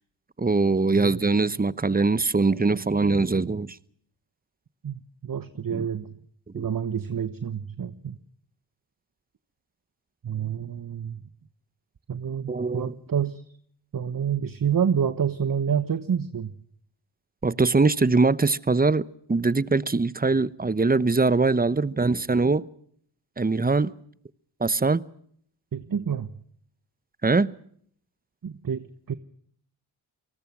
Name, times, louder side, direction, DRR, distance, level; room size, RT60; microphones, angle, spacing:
voice 1, 0.4-3.8 5.7-5.9 6.5-6.6 12.5-12.9 17.4-22.7 23.4-23.9 24.6-25.0 27.2-27.5, right 3 dB, 20° right, 1.0 m, -22 dB
voice 2, 4.8-6.1 6.5-8.2 10.2-11.2 12.1-13.4 13.9-16.5 25.7-26.3 28.4-29.2, right 8 dB, 40° right, 1.3 m, -28 dB
29.0 x 19.5 x 6.1 m
supercardioid pair, 55°, 49 cm